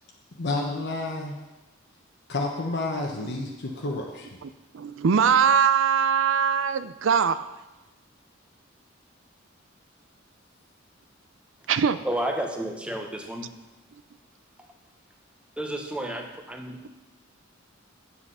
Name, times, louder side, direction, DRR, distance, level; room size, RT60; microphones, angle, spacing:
voice 1, 0.4-1.3 2.3-4.3, left 2 dB, 55° left, -1 dB, 1.0 m, -30 dB
voice 2, 4.4-7.5 11.7-12.0, right 7 dB, 70° right, 13 dB, 0.5 m, -22 dB
voice 3, 12.0-13.5 15.6-16.9, right 1 dB, 5° right, 3 dB, 1.0 m, -31 dB
8.2 x 7.7 x 5.6 m, 1.1 s
head